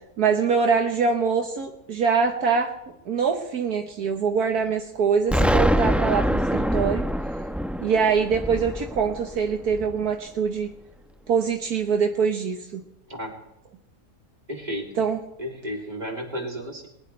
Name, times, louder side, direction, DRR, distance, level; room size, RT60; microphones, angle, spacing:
voice 1, 0.2-2.7 3.0-7.0 7.8-10.7 11.3-12.8 15.0-15.2, right 6 dB, 70° right, 4 dB, 1.7 m, -24 dB
Explosion, 5.3-10.1, equal, ahead, 0.6 m, -24 dB
voice 2, 14.5-15.0 15.4-16.9, equal, 25° right, 0 dB, 3.1 m, -33 dB
20.5 x 20.0 x 3.3 m, 0.85 s
omnidirectional pair, 1.7 m